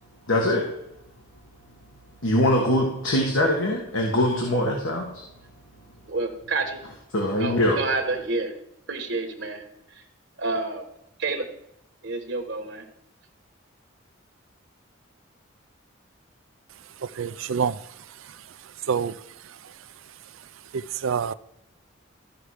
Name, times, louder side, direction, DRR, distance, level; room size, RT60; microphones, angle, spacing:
voice 1, 0.3-0.7 2.2-5.2 7.1-7.9, left 1 dB, 85° left, 1.8 m, -23 dB
voice 2, 6.1-6.8 7.4-8.5 8.9-9.6 9.9-10.0 10.4-10.8 11.2-11.4 12.0-12.8, right 3 dB, 65° right, 1.2 m, -28 dB
voice 3, 17.2-17.7 18.9-19.1 21.0-21.3, right 6 dB, 80° right, 0.4 m, -25 dB
14.0 x 5.8 x 4.9 m
head